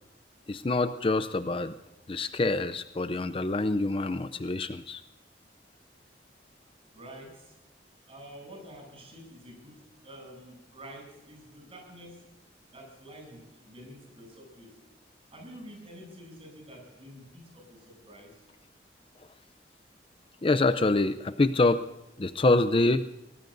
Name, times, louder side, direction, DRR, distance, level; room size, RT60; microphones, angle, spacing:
voice 1, 0.5-1.8 2.1-5.0 20.4-21.9 22.2-23.1, left 2 dB, 30° left, 11 dB, 0.5 m, -26 dB
voice 2, 6.9-7.5 8.1-12.2 12.7-14.7 15.3-18.4, equal, 35° right, 1 dB, 8.0 m, -48 dB
24.0 x 18.5 x 2.6 m, 0.93 s
head